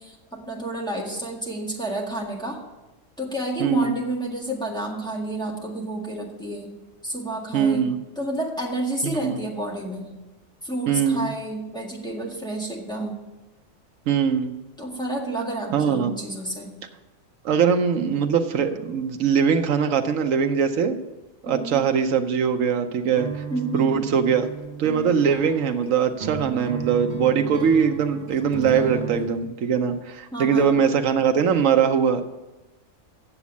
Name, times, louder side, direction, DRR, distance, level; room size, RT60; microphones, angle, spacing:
voice 1, 0.0-2.6 3.2-6.7 7.0-7.9 8.2-10.1 10.6-13.2 14.8-16.7 21.4-21.8 23.5-24.0 30.3-30.8, right 1 dB, 5° left, -2 dB, 1.7 m, -30 dB
voice 2, 3.6-4.0 7.5-8.0 9.0-9.4 10.9-11.3 14.1-14.5 15.7-16.1 17.4-21.0 21.4-23.4 23.7-24.5 24.8-32.2, right 7 dB, 80° right, 6 dB, 1.1 m, -21 dB
sound 1, 23.2-29.3, right 6 dB, 60° right, 1.6 m, -34 dB
8.5 x 7.1 x 8.3 m, 1.1 s
omnidirectional pair, 1.4 m